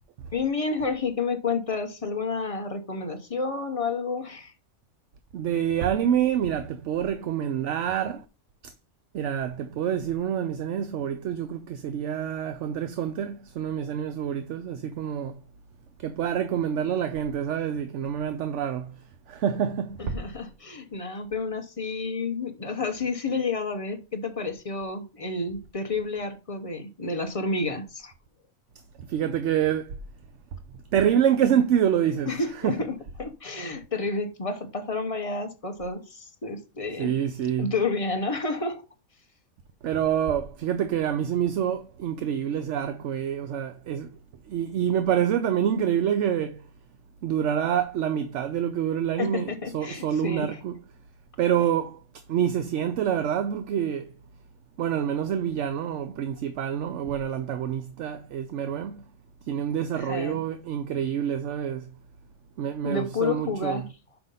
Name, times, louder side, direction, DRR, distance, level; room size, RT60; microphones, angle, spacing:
voice 1, 0.3-4.5 20.0-28.1 32.3-37.2 37.6-38.8 49.2-50.6 59.9-60.4 62.8-63.8, left 4 dB, 30° left, 0.8 m, -30 dB
voice 2, 5.3-8.2 9.1-15.4 16.0-18.9 19.3-20.2 29.0-29.9 30.9-32.3 32.6-32.8 37.0-37.7 39.8-44.2 44.4-46.6 47.2-50.8 51.4-52.0 52.3-54.1 54.8-59.0 59.5-61.9 62.6-63.9, right 9 dB, 65° right, 0.9 m, -27 dB
5.8 x 5.2 x 5.4 m
omnidirectional pair, 1.5 m